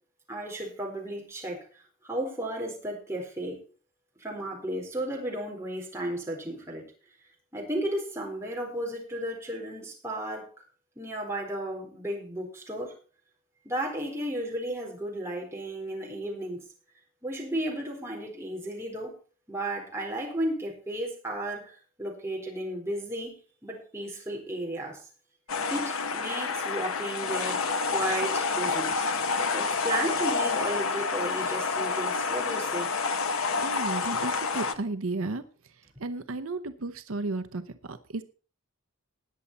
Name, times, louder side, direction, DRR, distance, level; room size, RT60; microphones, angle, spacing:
voice 1, 0.3-3.6 4.2-6.9 7.5-10.6 11.0-12.9 13.6-16.6 17.2-19.1 19.5-23.3 23.6-25.0 25.7-27.6 27.9-32.9, right 1 dB, 10° right, -1 dB, 4.2 m, -34 dB
sound 1, 25.5-34.7, left 4 dB, 75° left, 1.2 m, -28 dB
voice 2, 33.6-35.4 36.0-38.2, right 2 dB, 75° right, 11 dB, 0.8 m, -33 dB
19.5 x 7.2 x 4.2 m, 0.38 s
head